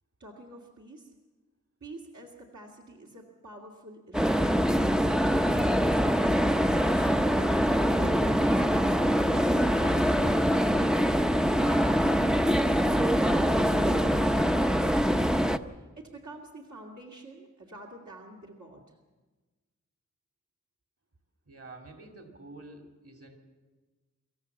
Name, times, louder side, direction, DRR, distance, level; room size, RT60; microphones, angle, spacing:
voice 1, 0.2-1.1 1.8-4.7 5.5-7.4 8.0-11.1 15.7-19.0, right 2 dB, 65° right, -3 dB, 2.3 m, -46 dB
sound 1, 4.1-15.6, equal, ahead, 0.6 m, -24 dB
voice 2, 21.5-23.4, right 2 dB, 50° right, 3 dB, 2.9 m, -48 dB
25.0 x 14.5 x 7.2 m, 1.2 s
wide cardioid pair, 100°, 30 cm